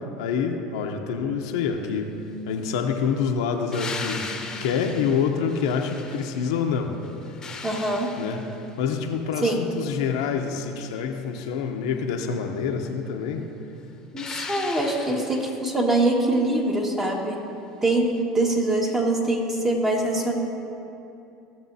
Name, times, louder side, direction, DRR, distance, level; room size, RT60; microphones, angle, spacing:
voice 1, 0.2-2.1 2.5-4.3 4.6-6.9 8.2-8.4 8.8-13.5, left 6 dB, 80° left, 3 dB, 0.8 m, -26 dB
sound 1, 3.7-6.6 7.0-8.8 14.2-15.6 18.2-18.3, left 4 dB, 25° left, 1.0 m, -37 dB
voice 2, 7.6-8.1 9.4-9.6 14.1-17.4 17.8-20.3, right 2 dB, 15° right, -1 dB, 1.8 m, -23 dB
16.5 x 6.9 x 2.8 m, 2.8 s
supercardioid pair, 90°, 3 cm